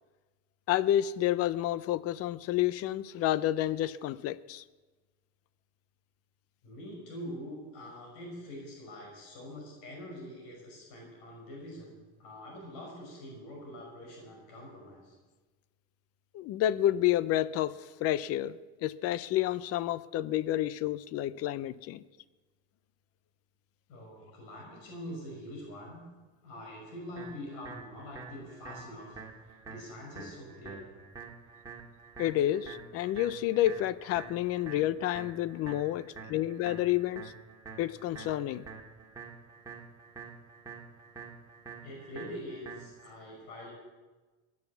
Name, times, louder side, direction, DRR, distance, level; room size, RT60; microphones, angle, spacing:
voice 1, 0.7-4.6 16.3-22.0 32.2-37.3 37.8-38.7, left 13 dB, 45° left, 18 dB, 0.6 m, -30 dB
voice 2, 6.6-15.2 23.9-26.0 26.4-29.2 29.4-30.9 41.8-43.7, equal, 75° left, -1 dB, 5.6 m, -44 dB
sound 1, 27.2-43.1, right 5 dB, 10° right, 2.0 m, -48 dB
16.5 x 9.4 x 7.2 m, 1.2 s
cardioid pair, 150°, 34 cm